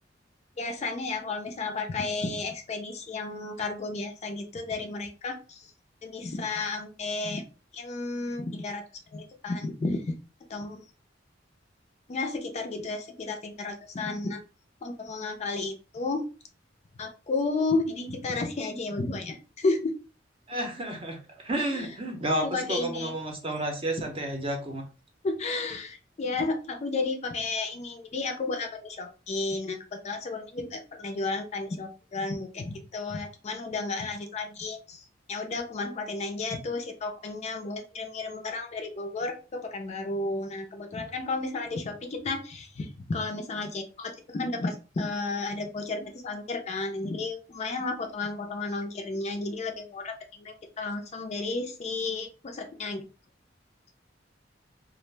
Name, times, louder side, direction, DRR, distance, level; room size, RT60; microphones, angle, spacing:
voice 1, 0.6-5.7 6.0-7.4 7.7-8.8 9.1-10.0 10.5-10.8 12.1-14.4 14.8-16.3 17.0-20.0 21.6-21.9 22.4-23.1 25.2-35.0 35.3-53.1, left 3 dB, 35° left, 4 dB, 0.4 m, -32 dB
voice 2, 20.5-24.8, right 1 dB, 30° right, 3 dB, 0.6 m, -31 dB
2.4 x 2.0 x 3.1 m, 0.33 s
head